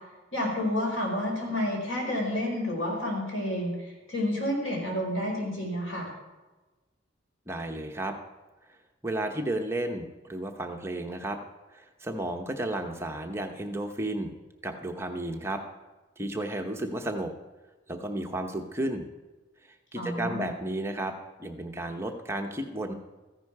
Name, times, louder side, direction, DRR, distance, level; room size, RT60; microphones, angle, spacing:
voice 1, 0.3-6.1 19.9-20.5, left 1 dB, 85° left, -1 dB, 4.8 m, -30 dB
voice 2, 7.5-8.2 9.0-11.4 11.7-14.3 14.6-15.6 16.2-17.3 17.9-19.1 19.9-21.1 21.4-22.9, right 1 dB, 15° right, 3 dB, 0.8 m, -33 dB
14.5 x 10.5 x 4.7 m, 1.2 s
head